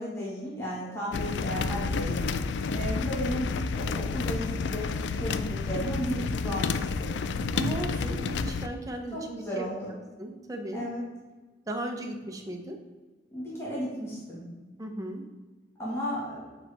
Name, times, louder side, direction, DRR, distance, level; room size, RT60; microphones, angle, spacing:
voice 1, 0.0-2.2 2.7-7.1 9.1-9.9 10.7-11.0 13.3-14.4 15.8-16.5, equal, 15° left, -7 dB, 1.6 m, -34 dB
sound 1, 1.1-8.7, left 4 dB, 80° left, 0.3 m, -30 dB
voice 2, 7.5-9.7 10.2-10.9 11.7-12.8 14.8-15.2, right 1 dB, 20° right, 2 dB, 0.7 m, -36 dB
7.6 x 4.2 x 3.4 m, 1.3 s
head